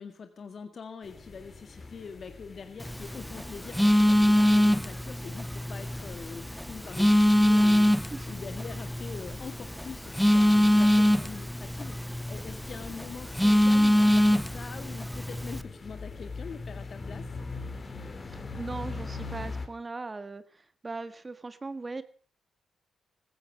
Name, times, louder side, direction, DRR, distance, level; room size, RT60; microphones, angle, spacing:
voice 1, 0.0-17.3, left 5 dB, 55° left, 8 dB, 1.8 m, -44 dB
sound 1, 1.0-19.7, left 3 dB, 40° left, 3.5 m, -43 dB
Telephone, 2.8-15.6, equal, 5° left, 0.9 m, -24 dB
voice 2, 18.2-22.0, right 3 dB, 35° right, 12 dB, 1.6 m, -39 dB
16.0 x 14.0 x 6.1 m, 0.42 s
supercardioid pair, 50°, 0 cm